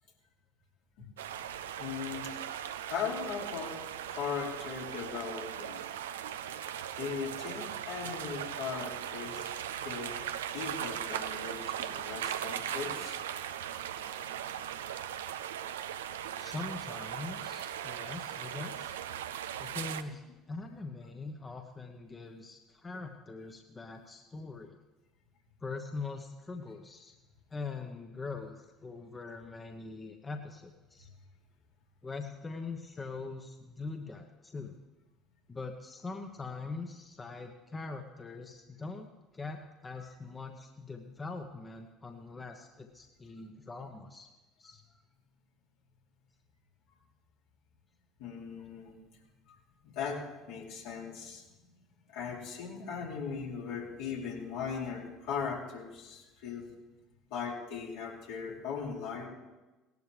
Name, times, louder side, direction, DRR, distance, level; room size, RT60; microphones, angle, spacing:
sound 1, 1.2-20.0, right 10 dB, 80° right, 0.5 m, -39 dB
voice 1, 1.4-2.4 2.8-3.8 4.1-5.8 6.9-10.2 10.5-13.2 40.0-40.1 48.2-49.0 49.5-49.6 49.8-51.4 52.1-56.7 57.3-59.3, left 6 dB, 70° left, -2 dB, 2.7 m, -39 dB
voice 2, 16.4-19.0 19.6-20.2 20.5-24.7 25.6-27.1 27.5-31.1 32.0-34.8 35.5-44.3 44.6-44.8, left 3 dB, 25° left, 4 dB, 1.1 m, -42 dB
18.0 x 12.0 x 3.4 m, 1.1 s
hypercardioid pair, 65°, 0 cm